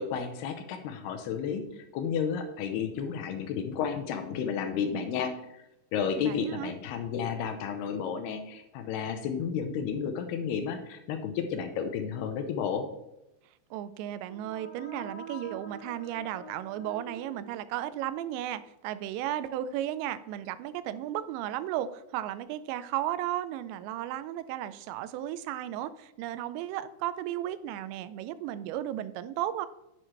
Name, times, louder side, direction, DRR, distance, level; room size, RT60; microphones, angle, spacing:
voice 1, 0.0-5.6 5.9-12.9, left 7 dB, 80° left, 7 dB, 2.6 m, -32 dB
voice 2, 6.2-6.7 13.7-29.7, right 12 dB, 85° right, 14 dB, 2.8 m, -34 dB
sound 1, 14.1-18.0, right 2 dB, 20° left, 1.0 m, -46 dB
10.5 x 8.8 x 3.3 m, 0.87 s
omnidirectional pair, 5.0 m